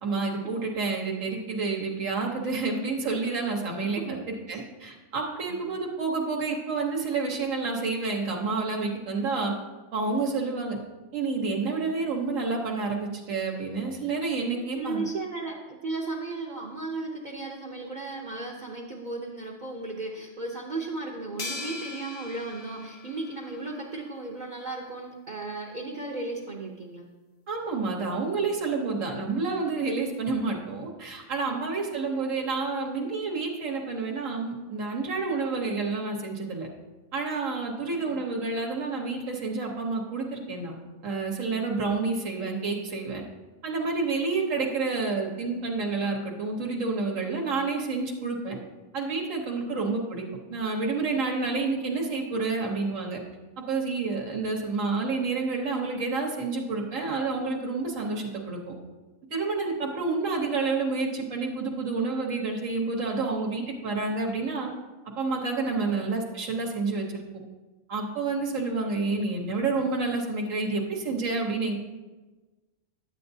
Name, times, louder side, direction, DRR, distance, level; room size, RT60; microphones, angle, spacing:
voice 1, 0.0-9.5 9.9-10.8 11.1-15.1 27.5-36.7 37.1-40.7 41.0-43.2 43.6-48.6 48.9-53.2 53.6-58.7 59.3-64.7 65.2-67.2 67.9-71.7, right 3 dB, 90° right, 0 dB, 1.4 m, -29 dB
voice 2, 14.7-27.1 31.5-31.7 38.1-38.2 49.6-49.7 65.7-65.9, right 3 dB, 45° right, -2 dB, 0.8 m, -35 dB
sound 1, 21.4-23.9, left 2 dB, 45° left, 0.9 m, -39 dB
11.0 x 7.9 x 2.7 m, 1.2 s
omnidirectional pair, 1.3 m